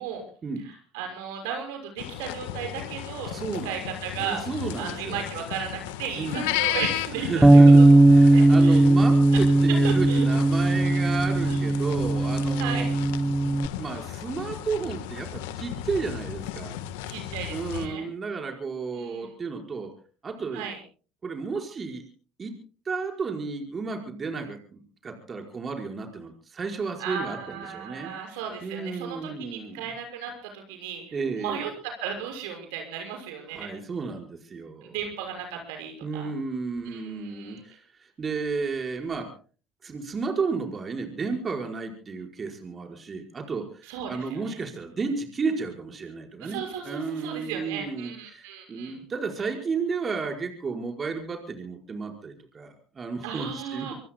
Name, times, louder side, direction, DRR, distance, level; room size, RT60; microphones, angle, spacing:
voice 1, 0.6-3.4 3.6-4.4 4.8-7.6 8.3-8.9 9.3-9.4 9.8-10.2 11.4-11.6 12.6-12.9 17.1-18.0 19.0-19.3 20.5-20.8 27.0-31.7 32.0-33.7 34.8-36.3 36.9-37.6 43.9-44.6 46.4-49.0 53.2-53.9, right 7 dB, 80° right, 3 dB, 6.1 m, -35 dB
sound 1, 2.0-17.9, left 12 dB, 80° left, 1.3 m, -35 dB
voice 2, 3.3-3.8 4.2-5.2 6.1-6.6 7.2-12.9 13.8-16.8 17.5-19.9 20.2-20.7 21.2-22.1 22.4-22.6 22.8-28.1 28.6-29.8 31.1-31.6 33.5-35.0 36.0-39.3 39.8-53.9, right 4 dB, 35° right, 3 dB, 4.9 m, -33 dB
Bass guitar, 7.4-13.7, right 2 dB, 10° right, 0.7 m, -17 dB
26.0 x 23.5 x 2.2 m, 0.38 s
hypercardioid pair, 75°, 0 cm